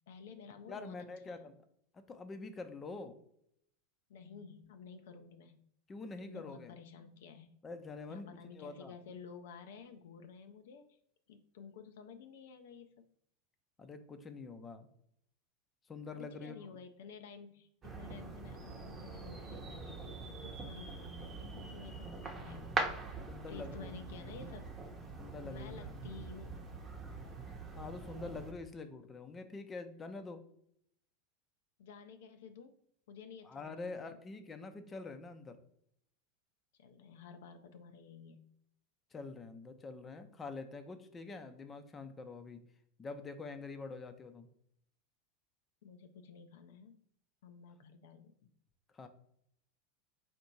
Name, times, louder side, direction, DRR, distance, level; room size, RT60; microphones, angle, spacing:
voice 1, 0.1-1.5 4.1-5.6 6.2-7.6 8.1-11.0 11.3-13.1 16.2-22.8 23.5-24.7 25.4-26.6 31.8-32.8 33.1-34.2 36.8-38.4 45.8-47.0 47.4-48.3, left 6 dB, 70° left, 7 dB, 0.4 m, -52 dB
voice 2, 0.7-1.5 1.9-3.2 5.9-6.7 7.6-8.3 8.6-8.9 13.8-14.9 15.9-16.7 23.3-24.0 25.2-25.9 27.8-30.4 33.4-35.6 39.1-42.6 43.0-44.5 48.9-49.1, left 3 dB, 25° left, 8 dB, 0.6 m, -46 dB
sound 1, 17.8-28.5, right 3 dB, 25° right, 0.9 m, -43 dB
4.3 x 2.6 x 4.3 m, 0.70 s
hypercardioid pair, 90°, 0 cm